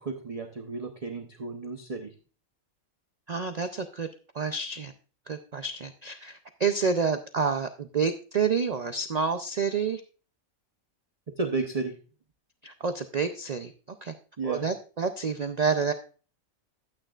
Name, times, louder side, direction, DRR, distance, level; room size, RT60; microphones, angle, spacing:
voice 1, 0.0-2.1 11.4-12.0 14.4-14.6, right 3 dB, 30° right, 5 dB, 0.7 m, -32 dB
voice 2, 3.3-4.1 4.3-4.9 5.3-10.0 12.6-13.7 14.0-14.1 14.4-15.9, right 5 dB, 70° right, 8 dB, 0.3 m, -28 dB
12.0 x 8.9 x 2.4 m, 0.37 s
omnidirectional pair, 1.5 m